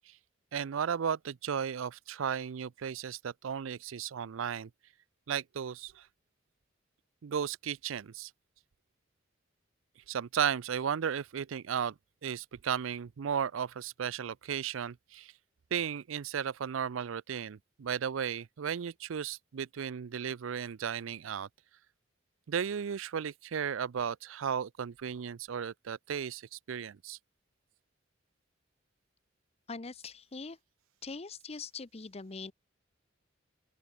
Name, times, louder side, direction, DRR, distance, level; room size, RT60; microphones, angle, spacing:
voice 1, 0.5-4.7 5.3-6.1 7.2-8.3 10.1-11.9 12.2-15.3 15.7-21.5 22.5-27.2, right 7 dB, 90° right, 0.4 m, -35 dB
voice 2, 29.7-30.6 31.0-32.5, left 4 dB, 30° left, 0.7 m, -42 dB
open air
head